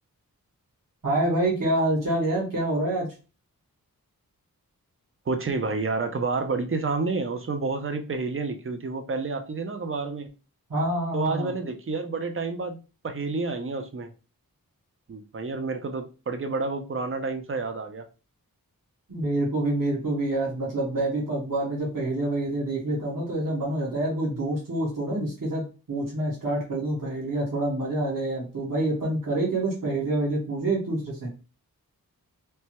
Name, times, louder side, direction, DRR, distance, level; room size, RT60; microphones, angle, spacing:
voice 1, 1.0-3.1 10.7-11.5 19.1-31.3, right 1 dB, 60° right, -5 dB, 1.4 m, -27 dB
voice 2, 5.3-10.3 11.1-14.1 15.1-18.1, right 3 dB, 35° right, 7 dB, 0.6 m, -29 dB
3.3 x 2.1 x 2.9 m, 0.33 s
wide cardioid pair, 50°, 37 cm